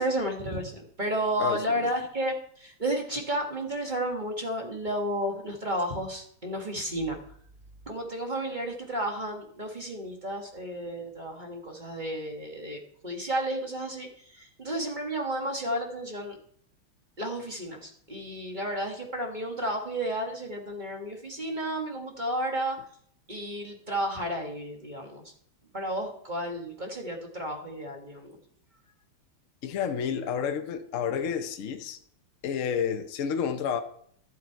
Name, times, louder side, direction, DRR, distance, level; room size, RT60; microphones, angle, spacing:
voice 1, 0.0-7.2 7.9-16.4 17.2-22.8 23.3-25.3 25.7-28.4, right 1 dB, 25° right, 1.2 m, -32 dB
voice 2, 1.4-1.9 29.6-32.0 32.4-33.8, left 7 dB, 70° left, 0.7 m, -30 dB
13.0 x 7.5 x 4.5 m
omnidirectional pair, 2.4 m